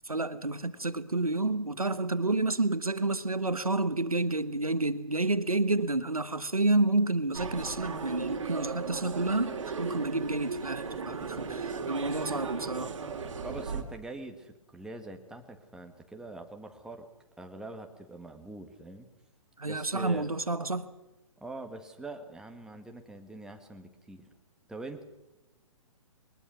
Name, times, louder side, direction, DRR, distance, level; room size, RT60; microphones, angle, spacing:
voice 1, 0.1-12.9 19.6-20.9, right 2 dB, 85° right, 1.4 m, -29 dB
sound 1, 7.3-13.8, right 5 dB, 60° right, 2.6 m, -36 dB
voice 2, 13.4-17.0 17.4-19.1 19.6-20.3 21.4-24.3 24.7-25.0, right 2 dB, 5° right, 1.8 m, -43 dB
22.0 x 20.0 x 6.2 m
figure-of-eight pair, 120°, 18 cm